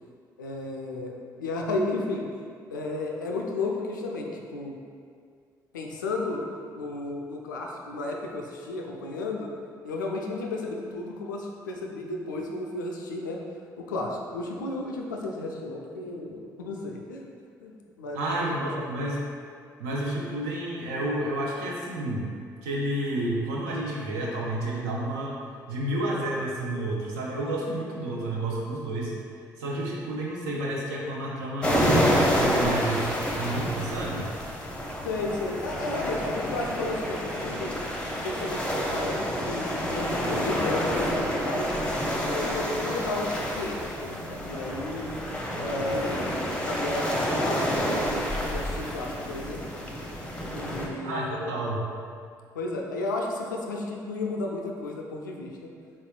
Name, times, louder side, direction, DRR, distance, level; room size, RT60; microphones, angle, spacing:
voice 1, 0.4-2.2 2.7-4.8 5.7-6.4 6.7-9.5 9.8-13.4 13.8-17.2 17.6-17.7 18.0-18.9 35.0-37.8 38.2-41.8 42.2-45.2 45.6-46.3 46.6-49.6 50.5-51.4 52.5-55.7, left 2 dB, 80° left, 0 dB, 0.4 m, -33 dB
voice 2, 18.1-19.2 19.8-22.2 22.6-25.4 25.7-29.1 29.6-33.1 33.3-34.3 51.0-51.8, right 1 dB, 70° right, -3 dB, 0.6 m, -30 dB
sound 1, 31.6-50.9, equal, 10° left, 0.6 m, -28 dB
4.2 x 3.6 x 2.3 m, 2.2 s
figure-of-eight pair, 45°, 10 cm